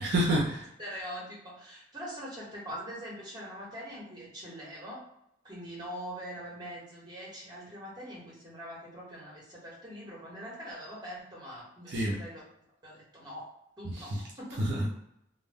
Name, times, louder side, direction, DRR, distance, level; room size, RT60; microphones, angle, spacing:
voice 1, 0.0-0.7 11.9-12.2 13.8-14.2 14.6-14.9, right 1 dB, 55° right, -3 dB, 0.4 m, -28 dB
voice 2, 0.8-5.0 5.4-12.4 12.8-13.5 13.8-14.6, equal, 20° right, -5 dB, 0.9 m, -43 dB
2.1 x 2.0 x 3.3 m, 0.78 s
head